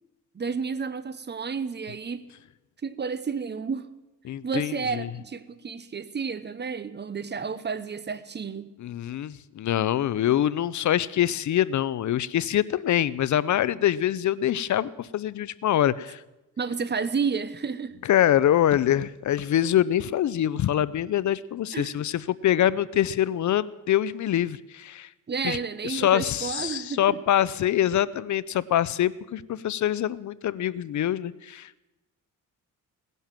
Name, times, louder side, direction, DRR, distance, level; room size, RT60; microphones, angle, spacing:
voice 1, 0.3-2.2 2.8-3.9 4.4-8.7 16.6-17.9 21.7-21.9 25.3-27.2, right 5 dB, 30° right, 15 dB, 0.9 m, -31 dB
voice 2, 4.2-5.1 8.8-16.2 18.0-25.1 25.4-25.6 25.8-31.9, left 11 dB, 55° left, 19 dB, 0.6 m, -25 dB
18.0 x 11.0 x 7.4 m, 1.0 s
cardioid pair, 110°, 35 cm